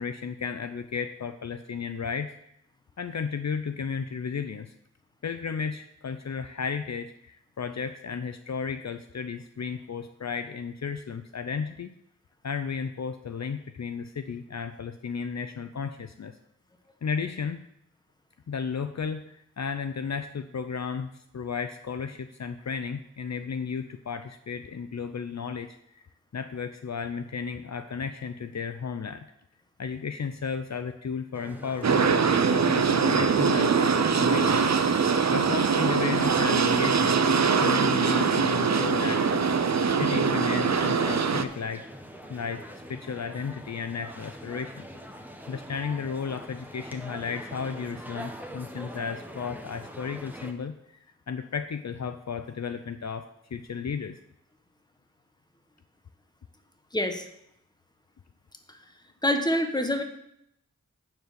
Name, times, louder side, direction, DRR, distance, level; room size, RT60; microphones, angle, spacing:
voice 1, 0.0-2.3 3.0-4.7 5.2-11.9 12.4-16.4 17.0-17.6 18.5-26.0 26.3-29.3 29.8-34.7 34.9-35.0 35.3-39.4 40.0-41.9 42.3-44.9 45.5-51.0 51.3-54.2, left 6 dB, 60° left, 9 dB, 0.6 m, -34 dB
sound 1, 31.3-50.5, equal, 5° right, 1.2 m, -44 dB
sound 2, 31.8-41.4, right 5 dB, 60° right, 0.6 m, -23 dB
voice 2, 56.9-57.3 59.2-60.0, left 1 dB, 15° left, 5 dB, 1.3 m, -25 dB
9.6 x 4.7 x 6.9 m, 0.78 s
wide cardioid pair, 45°, 31 cm